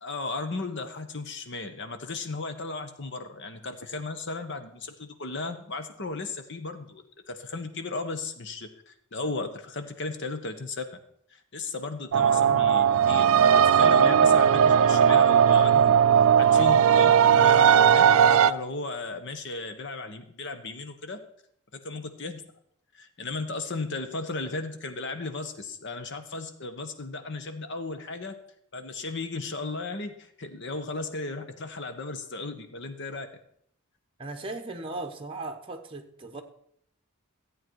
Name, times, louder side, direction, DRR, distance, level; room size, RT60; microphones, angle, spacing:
voice 1, 0.0-11.0 11.3-21.2 21.7-22.4 22.9-28.4 28.7-33.3, left 3 dB, 55° left, 8 dB, 1.1 m, -35 dB
sound 1, 12.1-18.5, right 8 dB, 75° right, 0.4 m, -18 dB
voice 2, 34.2-36.4, right 2 dB, 25° right, 4 dB, 1.1 m, -37 dB
14.0 x 8.4 x 4.7 m, 0.70 s
head